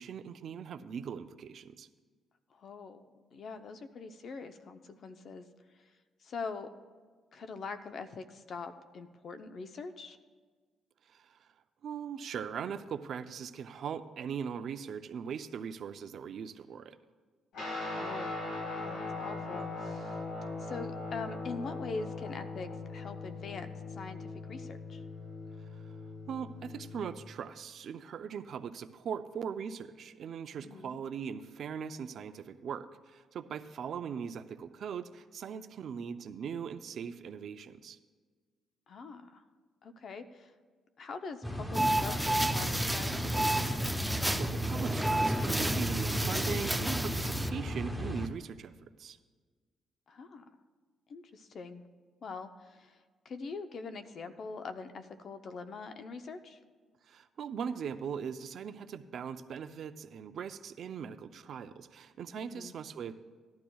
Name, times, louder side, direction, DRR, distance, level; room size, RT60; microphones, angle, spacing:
voice 1, 0.0-1.9 11.1-11.5 11.8-17.0 25.7-26.0 26.3-38.0 44.4-48.7 49.0-49.2 57.1-63.1, right 7 dB, 65° right, 10 dB, 0.5 m, -40 dB
voice 2, 2.5-5.4 6.2-6.7 7.3-10.2 17.7-18.5 18.8-20.2 20.6-25.0 30.6-31.0 38.9-39.4 39.8-40.5 41.0-44.2 50.1-50.5 51.1-51.8 52.2-56.6 62.3-62.7, left 4 dB, 55° left, 9 dB, 0.7 m, -43 dB
Guitar, 17.5-27.2, left 3 dB, 85° left, 3.8 m, -40 dB
sound 1, 41.4-48.3, equal, 10° left, 0.9 m, -35 dB
sound 2, 41.7-47.5, right 1 dB, 5° right, 0.5 m, -31 dB
17.0 x 12.0 x 2.3 m, 1.5 s
cardioid pair, 90°, 0 cm